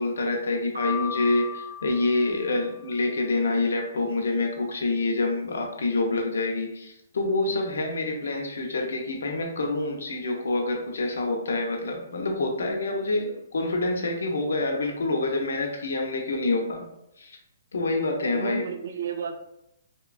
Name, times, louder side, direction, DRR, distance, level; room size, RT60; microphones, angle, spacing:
voice 1, 0.0-16.9 17.2-17.4 17.7-18.6, left 2 dB, 85° left, 2 dB, 0.6 m, -27 dB
Piano, 0.8-2.9, left 7 dB, 70° right, 1.1 m, -36 dB
voice 2, 8.3-8.7 18.3-19.4, right 6 dB, 50° right, 6 dB, 0.3 m, -33 dB
2.9 x 2.2 x 2.4 m, 0.82 s
hypercardioid pair, 180°, 0 cm